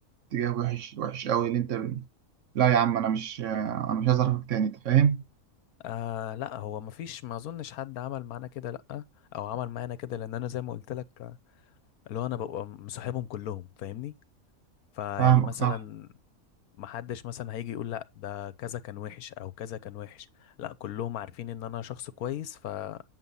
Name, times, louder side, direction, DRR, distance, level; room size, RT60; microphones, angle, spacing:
voice 1, 0.3-2.0 2.5-5.2 15.2-15.8, right 10 dB, 65° right, 1.0 m, -25 dB
voice 2, 5.8-9.0 9.3-11.4 12.1-14.1 14.9-16.1 16.8-23.0, left 11 dB, 85° left, 1.3 m, -36 dB
9.4 x 7.6 x 5.5 m
omnidirectional pair, 1.5 m